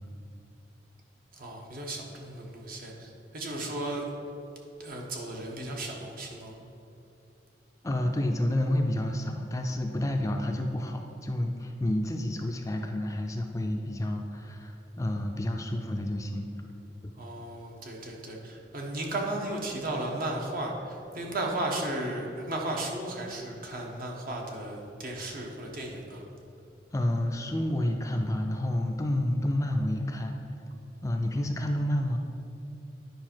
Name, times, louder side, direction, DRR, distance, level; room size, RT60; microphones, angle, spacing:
voice 1, 1.3-4.3 4.8-6.5 17.1-26.2, right 1 dB, 55° right, 0 dB, 1.2 m, -35 dB
voice 2, 7.8-16.5 17.0-17.1 26.9-30.4 31.0-32.2, left 1 dB, 20° left, 3 dB, 0.4 m, -29 dB
9.6 x 5.2 x 4.5 m, 2.7 s
head